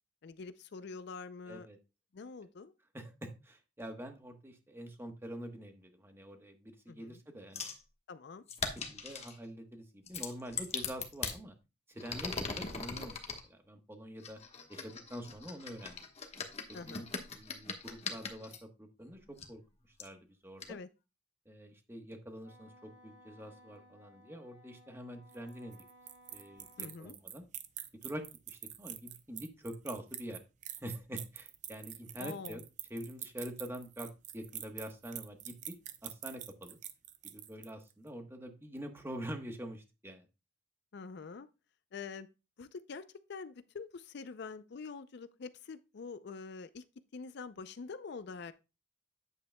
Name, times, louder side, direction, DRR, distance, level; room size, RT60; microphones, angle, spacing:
voice 1, 0.2-1.7 2.1-2.7 6.9-7.2 8.1-8.4 16.7-17.1 20.7-20.9 26.8-27.2 32.2-32.6 40.9-41.5 41.9-42.3 42.6-46.8 47.1-48.5, left 4 dB, 60° left, 0.4 m, -45 dB
voice 2, 1.5-1.8 2.9-7.6 8.6-11.5 11.9-13.2 13.4-14.4 14.7-16.1 16.7-17.1 17.3-19.6 20.0-20.8 21.5-25.8 26.3-27.4 28.0-30.4 30.8-32.6 32.9-35.8 36.0-36.8 37.3-40.3, equal, 15° right, 1.1 m, -45 dB
sound 1, 7.5-7.8 8.5-9.4 10.1-11.4 12.0-13.4 14.2-18.6 19.4-19.5 20.0-20.1 20.6-20.7, left 5 dB, 35° left, 1.2 m, -40 dB
Wind instrument woodwind instrument, 22.4-27.0, equal, 80° right, 1.3 m, -60 dB
sound 2, 25.3-37.9, right 11 dB, 40° right, 0.6 m, -45 dB
9.2 x 8.1 x 2.2 m
head